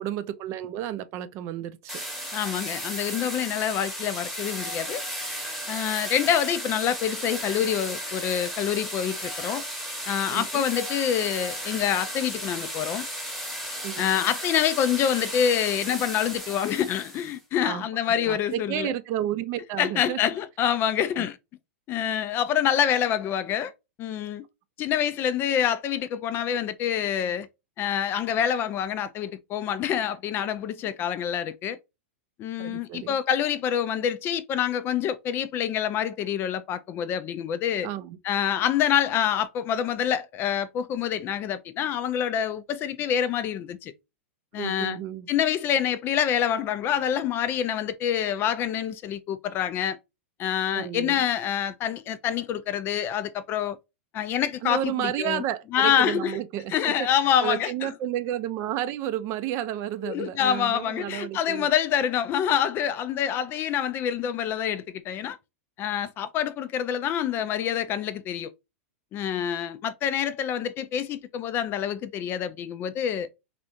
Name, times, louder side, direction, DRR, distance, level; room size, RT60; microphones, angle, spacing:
voice 1, 0.0-2.0 10.3-10.7 13.8-14.1 17.6-20.2 21.2-21.3 32.6-33.2 37.8-38.2 44.6-45.3 50.7-51.2 54.6-61.7, right 11 dB, 40° right, 0.5 m, -32 dB
sound 1, 1.9-17.4, equal, ahead, 1.1 m, -35 dB
voice 2, 2.3-5.0 5.7-9.6 10.1-13.1 14.0-18.9 19.8-21.4 21.9-23.7 24.0-24.4 24.8-27.5 27.8-31.8 32.4-37.9 38.2-43.9 44.5-45.0 45.3-50.0 50.4-53.8 54.1-55.4 55.7-56.4 56.7-57.9 60.0-65.4 65.8-68.5 69.1-73.3, left 9 dB, 30° left, 0.4 m, -26 dB
3.2 x 2.4 x 2.6 m
hypercardioid pair, 120°, 7 cm